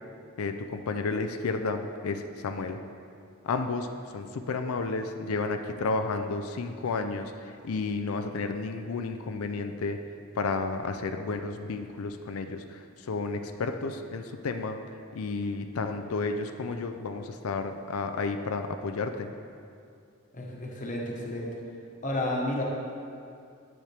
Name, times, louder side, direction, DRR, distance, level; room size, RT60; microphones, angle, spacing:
voice 1, 0.4-2.8 3.4-10.0 10.3-14.8 15.1-19.3, left 3 dB, 85° left, 7 dB, 0.5 m, -32 dB
voice 2, 20.3-21.5 22.0-22.6, left 1 dB, 35° left, -2 dB, 1.2 m, -31 dB
9.3 x 7.2 x 3.4 m, 2.4 s
head